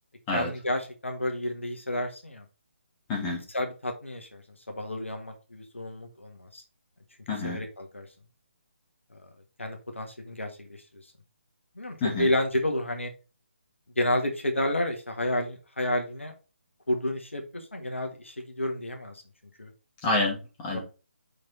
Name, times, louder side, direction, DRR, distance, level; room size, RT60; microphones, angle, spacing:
voice 1, 0.3-2.4 3.5-4.4 4.7-6.6 7.4-8.1 9.6-10.8 11.8-13.1 14.0-16.3 16.9-19.2 19.6-19.7 20.7-20.8, left 1 dB, 75° left, 4 dB, 1.6 m, -30 dB
voice 2, 3.1-3.4 7.3-7.6 12.0-12.3 20.0-20.8, left 2 dB, 20° left, -2 dB, 2.5 m, -28 dB
5.6 x 5.1 x 3.8 m, 0.32 s
figure-of-eight pair, 145°, 7 cm